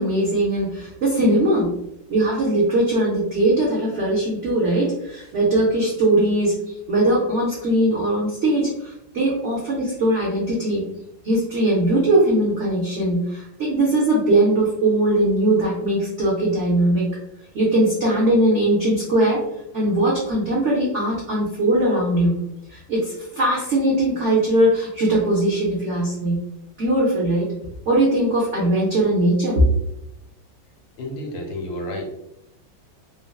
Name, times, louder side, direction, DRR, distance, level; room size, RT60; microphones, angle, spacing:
voice 1, 0.0-1.7 2.1-6.5 6.9-10.9 11.2-17.1 17.5-19.4 19.7-22.3 22.7-26.4 26.8-27.4 27.9-29.7, right 1 dB, 75° right, -5 dB, 0.6 m, -20 dB
voice 2, 31.0-32.1, left 1 dB, 80° left, 1 dB, 1.4 m, -31 dB
3.6 x 2.0 x 2.2 m, 0.81 s
omnidirectional pair, 2.1 m